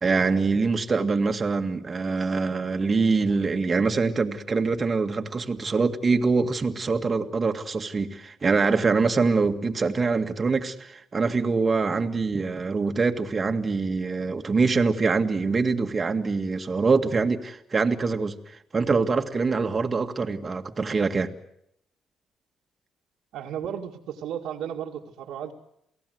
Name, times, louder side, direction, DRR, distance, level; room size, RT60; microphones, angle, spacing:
voice 1, 0.0-18.4 18.7-21.3, right 4 dB, 35° right, 5 dB, 1.9 m, -24 dB
voice 2, 23.3-25.5, right 9 dB, 90° right, -4 dB, 2.1 m, -34 dB
28.5 x 18.0 x 8.0 m, 0.77 s
cardioid pair, 90°, 0 cm